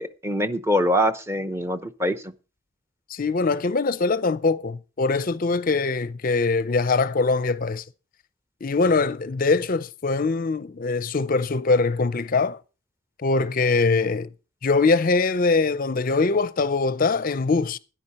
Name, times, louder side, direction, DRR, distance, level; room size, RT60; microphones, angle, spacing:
voice 1, 0.0-2.2, equal, 10° right, 0.8 m, -24 dB
voice 2, 3.1-7.8 8.6-12.6 13.2-14.3 14.6-17.8, left 3 dB, 40° left, 0.5 m, -22 dB
13.5 x 10.0 x 4.1 m
head